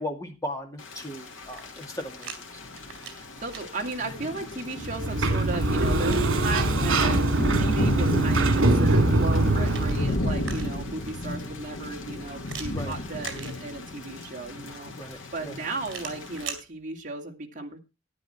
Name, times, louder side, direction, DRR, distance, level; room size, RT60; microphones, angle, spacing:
voice 1, 0.0-2.6 12.7-12.9 14.9-15.6, left 1 dB, 15° left, 3 dB, 2.4 m, -37 dB
Thunder / Rain, 0.8-16.4, left 1 dB, 70° left, 2.1 m, -34 dB
sound 1, 1.4-2.4 2.7-3.6 5.3-7.2 9.2-11.0 12.4-14.0 15.8-16.6, right 7 dB, 60° right, 3.8 m, -42 dB
voice 2, 3.1-14.9 15.3-17.8, right 3 dB, 40° right, 1 dB, 2.4 m, -35 dB
Sliding door, 4.8-10.2, right 2 dB, 75° right, 2.6 m, -23 dB
12.0 x 10.5 x 4.4 m, 0.27 s
head